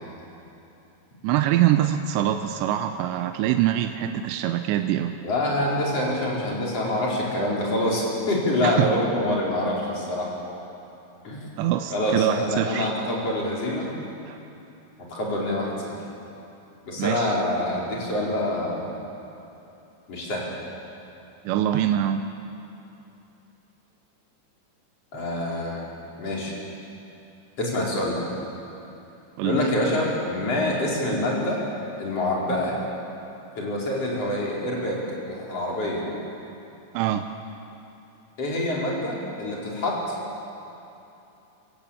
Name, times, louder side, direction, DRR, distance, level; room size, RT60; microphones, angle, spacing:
voice 1, 1.2-5.1 8.6-8.9 11.6-12.9 14.3-14.4 17.0-17.4 21.5-22.2 29.4-29.6 36.9-37.3, right 12 dB, 80° right, 7 dB, 2.9 m, -24 dB
voice 2, 5.2-10.3 11.2-11.4 11.9-13.9 15.1-15.9 16.9-18.8 20.1-20.5 25.1-25.8 26.2-26.5 27.6-28.3 29.4-31.6 32.0-32.8 33.6-35.0 35.3-36.0 38.4-40.1, left 1 dB, 35° left, -4 dB, 5.1 m, -26 dB
25.5 x 15.5 x 8.8 m, 2.9 s
omnidirectional pair, 5.2 m